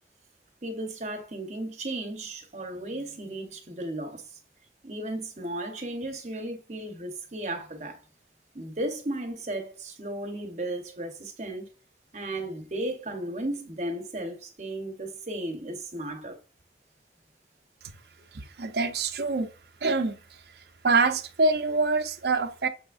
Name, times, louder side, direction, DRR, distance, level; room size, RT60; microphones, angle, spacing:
voice 1, 0.6-4.4 4.8-8.0 8.5-11.7 12.1-16.4, right 1 dB, 40° right, 0.8 m, -35 dB
voice 2, 18.3-19.5 19.8-20.2 20.8-22.7, right 3 dB, 65° right, 0.6 m, -25 dB
6.4 x 3.4 x 2.4 m
head